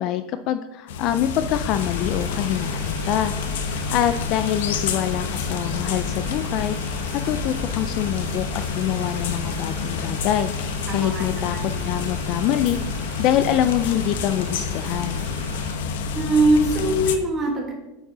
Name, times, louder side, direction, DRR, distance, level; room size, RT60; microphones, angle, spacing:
voice 1, 0.0-3.3 3.6-11.6 11.8-15.2, left 11 dB, 35° left, 11 dB, 0.3 m, -25 dB
sound 1, 0.9-17.2, left 5 dB, 85° left, 0.8 m, -28 dB
Boiling, 1.7-15.8, right 5 dB, 75° right, 1.9 m, -42 dB
voice 2, 10.9-11.7 16.1-17.7, right 1 dB, 15° right, -1 dB, 1.6 m, -22 dB
8.8 x 5.2 x 4.8 m, 0.95 s
supercardioid pair, 180°, 0 cm